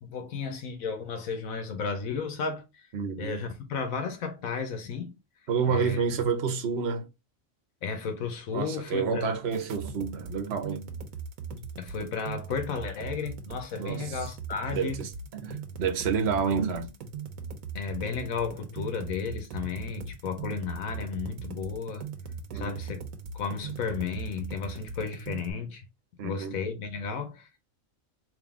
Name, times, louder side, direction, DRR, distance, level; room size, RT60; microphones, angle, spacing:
voice 1, 0.0-2.9 3.2-5.2 5.7-6.0 7.8-9.4 11.8-15.0 15.4-15.5 17.7-22.0 22.5-23.0 23.3-25.9 26.2-27.6, left 5 dB, 90° left, 1.3 m, -33 dB
voice 2, 2.9-3.4 5.5-7.1 8.5-10.9 13.8-14.2 14.7-17.0 22.5-22.8 26.2-26.6, right 6 dB, 55° right, 1.0 m, -29 dB
sound 1, 9.5-25.5, right 5 dB, 85° right, 1.2 m, -39 dB
3.8 x 2.8 x 3.5 m
omnidirectional pair, 1.4 m